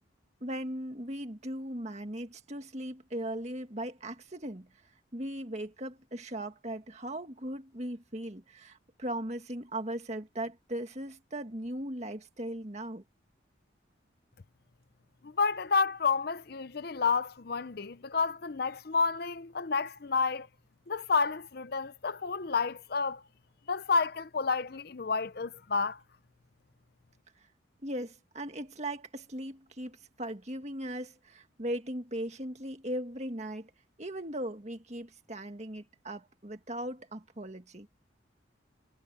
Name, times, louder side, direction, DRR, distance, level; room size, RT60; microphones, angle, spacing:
voice 1, 0.4-4.7 5.1-13.0 27.8-33.7 34.0-37.9, right 1 dB, 35° right, 2.0 m, -38 dB
voice 2, 15.2-20.5 20.9-23.2 23.7-26.0, left 4 dB, 50° left, 0.6 m, -30 dB
head